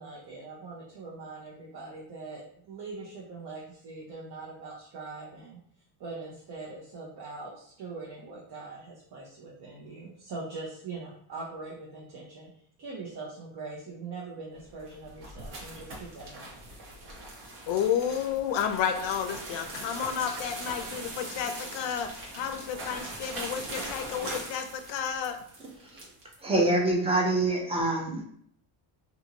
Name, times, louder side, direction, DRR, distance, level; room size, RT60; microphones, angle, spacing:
voice 1, 0.0-5.6 6.0-12.5 12.8-16.6, right 3 dB, 55° right, -4 dB, 0.8 m, -42 dB
sound 1, 14.6-26.4, right 2 dB, 80° right, 1.2 m, -41 dB
voice 2, 17.7-25.4, left 8 dB, 70° left, 7 dB, 0.5 m, -31 dB
voice 3, 26.4-28.3, right 2 dB, 10° right, -1 dB, 0.6 m, -25 dB
2.6 x 2.5 x 2.8 m, 0.65 s
cardioid pair, 120°, 47 cm